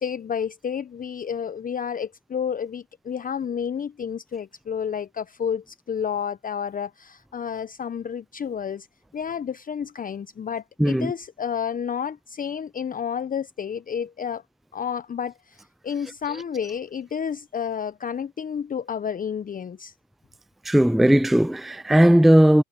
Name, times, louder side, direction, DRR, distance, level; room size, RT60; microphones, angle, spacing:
voice 1, 0.0-8.9 9.1-14.4 14.7-19.9, left 7 dB, 20° left, 1.1 m, -30 dB
voice 2, 10.8-11.1 20.6-22.6, right 1 dB, ahead, 0.8 m, -17 dB
hypercardioid pair, 85°, 40 cm